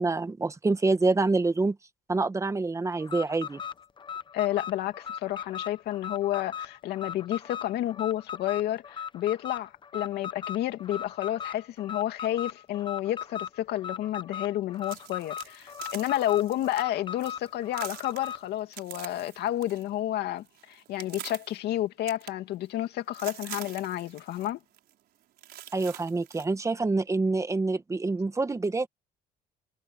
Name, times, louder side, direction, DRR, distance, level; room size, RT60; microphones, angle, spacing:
voice 1, 0.0-1.8 2.1-3.6 25.7-28.9, right 3 dB, 20° right, 1.6 m, -26 dB
Alarm, 3.0-18.5, left 8 dB, 30° left, 1.0 m, -38 dB
voice 2, 4.3-24.6, left 13 dB, 75° left, 2.5 m, -30 dB
sound 1, 14.8-16.8 17.2-17.5 17.7-19.9 20.2-21.6 22.1-22.8 23.1-24.5 24.7-24.9 25.4-26.5, right 13 dB, 70° right, 4.9 m, -45 dB
cardioid pair, 110°, 17 cm